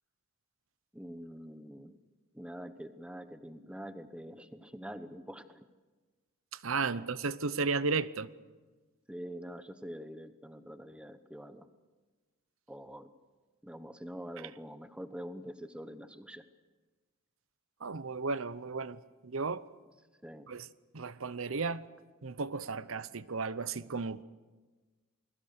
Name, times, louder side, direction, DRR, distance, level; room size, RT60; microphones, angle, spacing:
voice 1, 0.9-2.0 2.3-5.7 6.9-7.1 9.1-11.7 12.7-13.1 13.6-16.5 20.2-20.5, equal, 5° right, 10 dB, 0.9 m, -45 dB
voice 2, 6.6-8.3 17.8-19.6 20.5-20.7 20.9-21.8 22.2-24.2, right 4 dB, 75° right, 16 dB, 0.8 m, -34 dB
28.5 x 22.0 x 6.6 m, 1.3 s
head